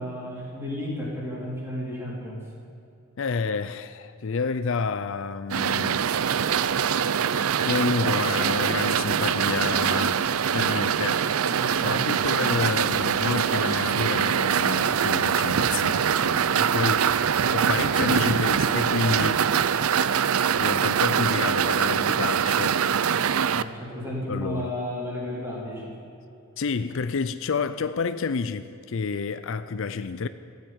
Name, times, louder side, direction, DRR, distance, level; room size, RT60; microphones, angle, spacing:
voice 1, 0.0-2.4 11.5-12.2 16.7-16.9 23.5-25.9, left 1 dB, 10° right, 4.0 m, -33 dB
voice 2, 3.2-6.1 7.6-10.2 10.5-11.3 11.7-17.2 17.5-19.5 20.2-22.8 24.3-24.7 26.6-30.3, left 5 dB, 60° left, 0.5 m, -29 dB
sound 1, 5.5-23.6, right 7 dB, 75° right, 0.5 m, -23 dB
14.5 x 9.4 x 9.7 m
head